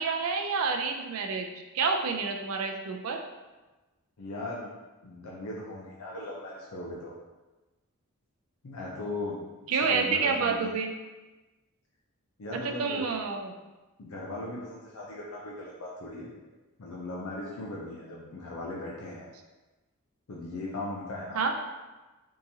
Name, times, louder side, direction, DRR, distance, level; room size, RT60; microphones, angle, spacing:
voice 1, 0.0-1.5 1.7-3.2 9.7-10.9 12.6-13.5 21.3-21.5, right 5 dB, 65° right, 3 dB, 0.4 m, -28 dB
voice 2, 4.2-4.7 5.0-7.1 8.6-9.4 9.7-10.7 12.4-13.1 14.0-16.3 16.8-19.3 20.3-21.4, left 2 dB, 70° left, -3 dB, 0.5 m, -38 dB
3.6 x 2.9 x 2.7 m, 1.2 s
head